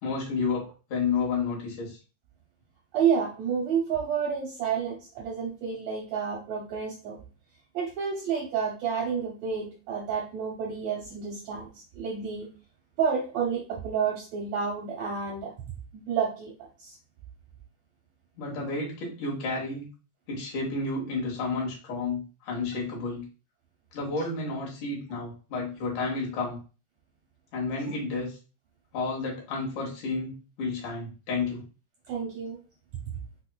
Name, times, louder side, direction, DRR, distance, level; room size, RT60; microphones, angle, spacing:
voice 1, 0.0-2.0 18.4-19.9 20.3-23.3 23.9-26.6 27.5-28.4 28.9-30.3 30.6-31.6, left 4 dB, 70° left, -3 dB, 2.6 m, -31 dB
voice 2, 2.9-7.2 7.7-11.7 11.9-12.5 13.0-15.5 15.9-17.0 32.1-32.6, right 6 dB, 75° right, -3 dB, 1.6 m, -30 dB
5.6 x 2.1 x 2.2 m, 0.35 s
omnidirectional pair, 3.7 m